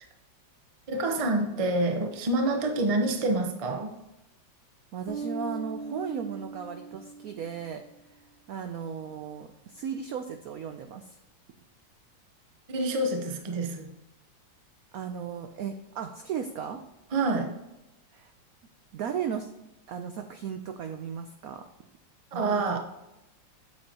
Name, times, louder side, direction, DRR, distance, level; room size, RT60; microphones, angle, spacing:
voice 1, 0.9-4.0 12.7-13.9 17.1-17.5 22.3-22.8, right 2 dB, 35° right, 4 dB, 0.5 m, -27 dB
voice 2, 4.9-7.8 8.5-11.2 14.9-16.8 18.1-18.3 18.9-19.5 19.9-21.6 22.3-22.8, right 7 dB, 75° right, 7 dB, 0.8 m, -36 dB
Bass guitar, 5.1-7.7, right 3 dB, 35° left, 0.5 m, -39 dB
8.6 x 7.7 x 2.9 m, 0.92 s
omnidirectional pair, 2.1 m